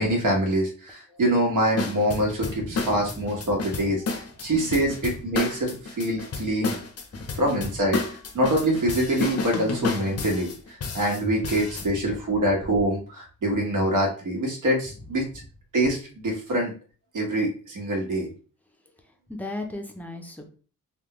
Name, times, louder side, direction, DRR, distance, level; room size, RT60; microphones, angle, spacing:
voice 1, 0.0-4.0 4.4-6.7 7.4-8.0 8.3-10.5 10.9-15.2 15.7-16.7 17.1-18.3, right 1 dB, 70° right, 0 dB, 1.3 m, -25 dB
sound 1, 1.8-11.9, left 4 dB, 50° left, 0.6 m, -31 dB
voice 2, 2.2-3.6 4.4-4.5 7.1-7.3 11.7-12.2 19.3-20.6, left 1 dB, 5° left, 3 dB, 0.5 m, -38 dB
3.6 x 2.3 x 3.0 m, 0.38 s
wide cardioid pair, 130°, 32 cm